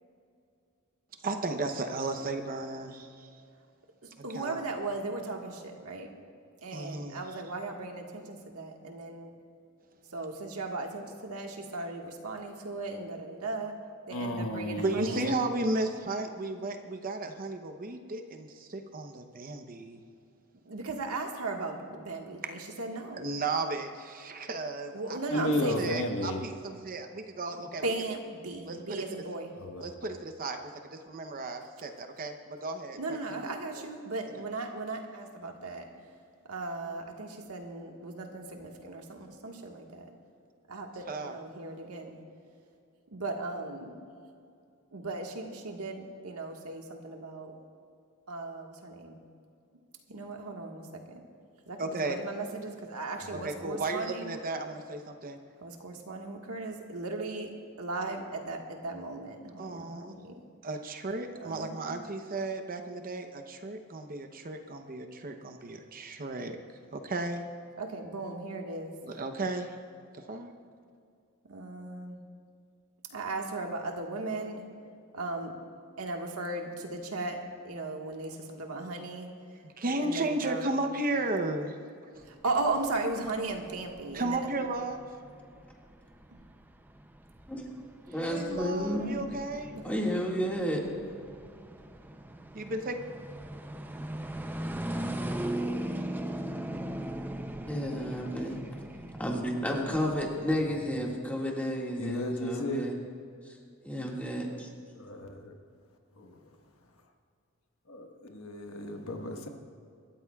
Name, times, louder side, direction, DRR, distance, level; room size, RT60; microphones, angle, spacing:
voice 1, 1.2-3.3 4.3-4.6 6.7-7.2 14.8-20.0 23.1-27.8 28.7-29.0 29.8-30.6 30.9-33.6 41.1-41.3 51.8-52.2 53.4-55.4 59.6-60.2 60.6-66.6 66.9-67.4 69.0-69.8 70.1-70.5 79.6-81.8 82.0-82.2 84.1-85.1 88.2-89.7 92.5-93.0, right 2 dB, 40° right, 6 dB, 0.8 m, -34 dB
voice 2, 4.0-6.1 6.6-9.3 10.1-13.8 14.1-15.2 20.6-23.3 24.9-25.8 27.6-29.5 33.0-35.9 36.5-40.1 40.7-42.2 43.1-44.0 44.9-47.5 48.3-49.2 50.1-51.2 51.6-54.4 55.6-57.5 57.8-60.5 61.3-62.0 67.8-69.0 71.5-72.2 73.1-74.6 75.1-75.5 76.0-79.3 80.0-80.9 82.2-84.5 86.3-86.4 89.0-89.1 89.7-90.1, right 3 dB, 85° right, 2 dB, 1.6 m, -37 dB
voice 3, 14.1-15.4 25.3-26.4 29.6-29.9 53.3-53.4 102.0-102.9 104.9-105.6 106.2-106.5 107.9-109.5, left 1 dB, 70° left, 3 dB, 1.3 m, -34 dB
sound 1, 82.2-101.2, right 1 dB, 10° right, 0.5 m, -39 dB
voice 4, 88.1-89.2 89.8-90.8 97.7-98.6 99.2-103.0 103.4-103.6 103.8-104.7, equal, 5° left, -2 dB, 1.9 m, -32 dB
25.5 x 13.0 x 2.4 m, 2.4 s
head